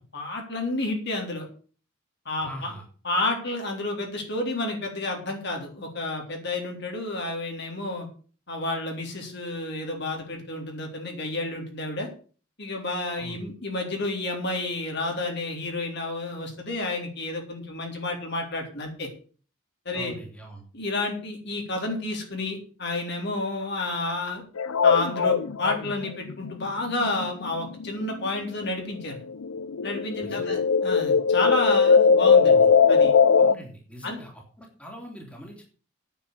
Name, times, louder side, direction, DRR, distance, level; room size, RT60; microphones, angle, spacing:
voice 1, 0.1-1.5 2.3-2.7 3.0-8.1 8.5-12.1 12.6-19.1 19.9-20.2 20.7-24.4 24.8-29.2 29.8-33.1 34.0-34.2, left 2 dB, 55° left, 1 dB, 3.8 m, -30 dB
voice 2, 2.4-2.9 13.2-13.4 19.9-20.6 30.2-30.6 33.4-35.6, equal, 5° left, 0 dB, 3.1 m, -42 dB
sound 1, 24.6-28.7 29.0-33.5, left 5 dB, 90° left, 0.6 m, -20 dB
9.1 x 7.7 x 8.2 m, 0.40 s
head